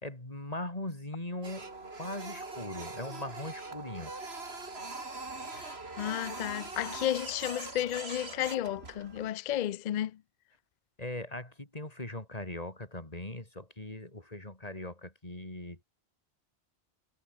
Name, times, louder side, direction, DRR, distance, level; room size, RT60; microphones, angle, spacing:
voice 1, 0.0-1.7 2.0-4.1 11.0-15.8, left 1 dB, 40° left, 3.8 m, -40 dB
Printer, 1.4-9.3, right 3 dB, 80° right, 3.3 m, -42 dB
voice 2, 5.5-10.2, left 12 dB, 55° left, 0.5 m, -33 dB
omnidirectional pair, 1.1 m